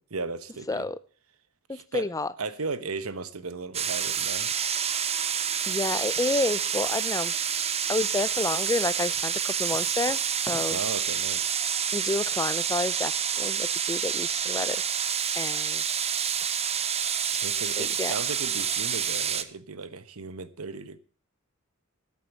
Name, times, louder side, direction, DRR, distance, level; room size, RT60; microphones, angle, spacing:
voice 1, 0.1-0.9 1.7-2.1 2.4-4.5 10.7-11.5 17.4-21.0, right 4 dB, 85° right, 1.1 m, -36 dB
voice 2, 0.7-1.0 1.7-2.3 5.7-7.3 7.9-10.8 11.9-14.8 15.3-15.8 17.6-18.2, left 2 dB, 15° left, 0.5 m, -30 dB
sound 1, 3.7-19.4, right 8 dB, 30° right, 0.8 m, -28 dB
12.0 x 8.5 x 7.1 m
head